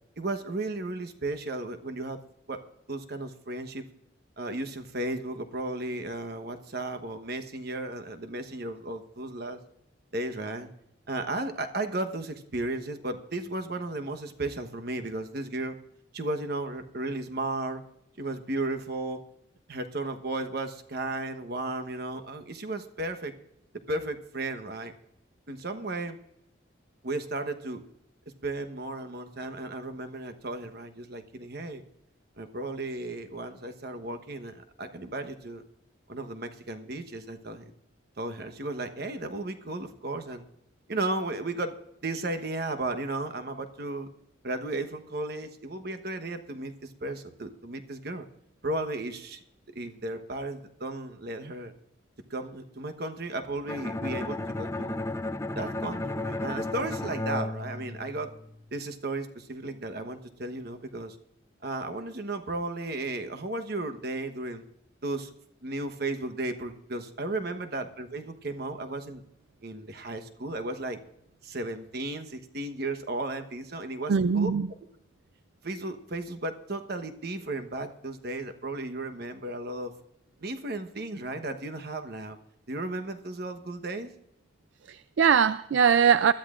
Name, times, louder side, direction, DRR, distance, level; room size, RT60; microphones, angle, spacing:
voice 1, 0.2-2.2 2.5-2.6 2.9-3.9 4.4-9.6 10.1-10.7 11.1-15.8 16.1-17.8 18.2-19.2 19.7-23.3 23.9-24.9 25.5-26.2 27.0-27.8 28.4-31.8 32.4-35.6 36.1-37.7 38.2-40.4 40.9-44.1 44.4-48.2 48.6-49.4 49.7-51.7 52.3-55.0 55.5-58.3 58.7-61.2 61.6-64.6 65.0-65.3 65.6-69.2 69.6-71.0 71.4-74.5 75.6-79.9 80.4-82.4 82.7-84.1, right 2 dB, 55° right, 1.1 m, -34 dB
Bowed string instrument, 53.7-58.6, left 2 dB, 15° left, 0.4 m, -33 dB
voice 2, 74.1-74.7 84.9-86.3, right 7 dB, 70° right, 0.4 m, -21 dB
20.5 x 13.0 x 2.5 m
head